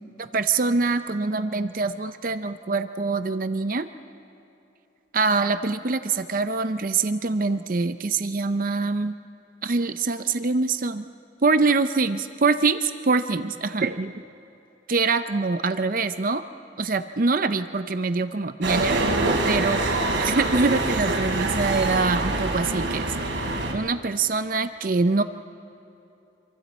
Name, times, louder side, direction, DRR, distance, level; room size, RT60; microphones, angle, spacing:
voice 1, 0.2-3.9 5.1-9.1 9.6-11.1 11.4-14.1 14.9-16.4 16.8-19.0 19.5-19.8 20.2-25.2, right 3 dB, 45° right, 10 dB, 0.6 m, -24 dB
sound 1, 18.6-23.7, right 2 dB, 75° right, 3.8 m, -25 dB
26.5 x 24.5 x 4.3 m, 2.9 s
head